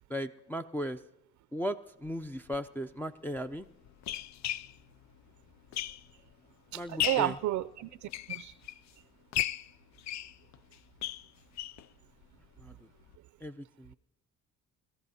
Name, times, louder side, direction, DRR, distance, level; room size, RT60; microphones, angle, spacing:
voice 1, 0.1-1.0 1.5-3.7 6.7-7.4 12.6-12.7 13.4-13.9, equal, 5° left, 4 dB, 0.5 m, -36 dB
sound 1, 2.4-2.6 3.4-6.3 6.7-7.4 7.9-8.9 9.3-11.9 12.2-12.3 12.6-12.7 13.1-13.2, left 12 dB, 65° left, 0.4 m, -36 dB
voice 2, 6.7-8.5, right 14 dB, 70° right, 14 dB, 0.5 m, -32 dB
29.0 x 14.0 x 2.8 m, 0.87 s
cardioid pair, 90°, 30 cm